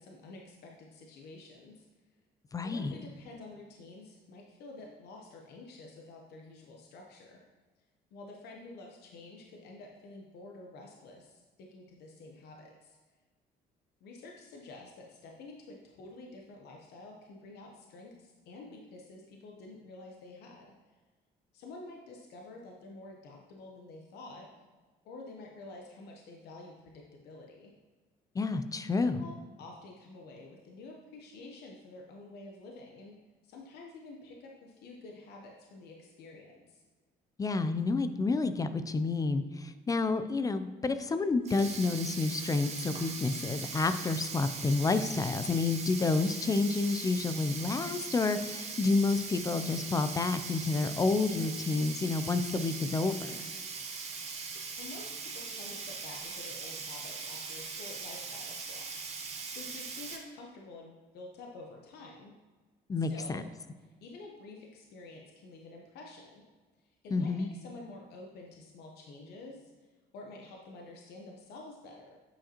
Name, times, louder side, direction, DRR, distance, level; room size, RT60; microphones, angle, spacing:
voice 1, 0.0-1.9 2.6-7.4 8.1-13.0 14.0-20.7 21.5-24.5 25.0-27.7 29.0-33.1 33.4-36.8 54.8-62.3 63.1-63.4 63.8-66.4 67.0-69.7 70.1-72.2, left 2 dB, 75° left, 0 dB, 0.8 m, -49 dB
voice 2, 2.5-3.0 28.4-29.3 37.4-53.4 62.9-63.4 67.1-67.5, left 3 dB, 20° left, 11 dB, 0.3 m, -29 dB
Sink (filling or washing), 41.3-60.2, right 5 dB, 40° right, 0.9 m, -40 dB
8.4 x 4.9 x 2.9 m, 1.3 s
cardioid pair, 110°, 17 cm